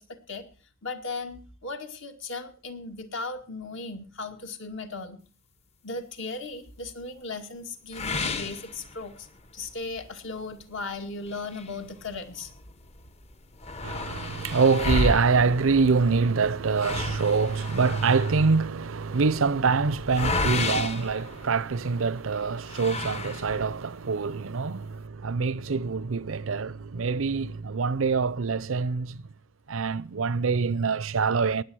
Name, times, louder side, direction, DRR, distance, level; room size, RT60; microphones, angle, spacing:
voice 1, 0.1-0.4 0.8-5.2 5.8-9.3 9.5-12.5, left 3 dB, 65° left, 2.2 m, -37 dB
sound 1, 7.9-9.4 9.8-9.9 10.4-10.5 11.3-12.6 12.9-13.0 13.2-22.0 22.7-23.8, left 2 dB, 30° left, 0.9 m, -32 dB
voice 2, 13.8-29.2 29.7-31.6, right 4 dB, 70° right, 0.6 m, -25 dB
19.0 x 8.1 x 6.3 m
head